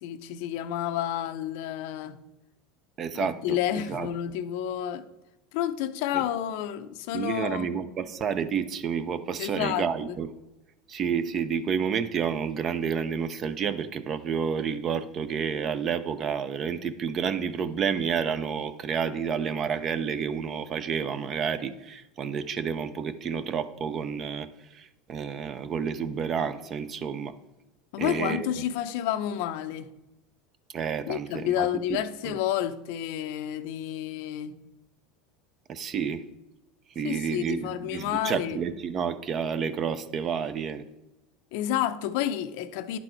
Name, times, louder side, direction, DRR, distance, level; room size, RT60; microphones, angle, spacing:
voice 1, 0.0-2.2 3.1-5.1 5.5-7.8 9.4-10.2 27.9-29.9 31.1-34.5 37.0-38.6 41.5-43.0, left 11 dB, 70° left, 0.5 m, -30 dB
voice 2, 3.0-4.1 6.1-6.2 7.1-10.3 10.9-27.3 28.0-28.5 30.7-32.4 35.7-36.2 37.0-40.8, right 7 dB, 35° right, 0.6 m, -30 dB
10.5 x 4.1 x 4.4 m
supercardioid pair, 120°, 0 cm